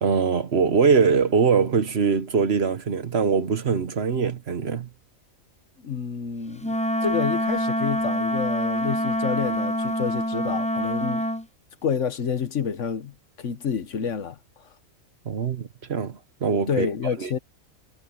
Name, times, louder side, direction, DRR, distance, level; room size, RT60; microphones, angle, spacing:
voice 1, 0.0-4.9 15.2-16.9 17.2-17.3, right 5 dB, 55° right, 1.3 m, -22 dB
voice 2, 5.8-11.3 11.8-14.7 16.7-17.4, left 7 dB, 65° left, 1.4 m, -29 dB
Wind instrument woodwind instrument, 6.6-11.4, equal, 10° left, 0.4 m, -26 dB
omnidirectional pair, 1.4 m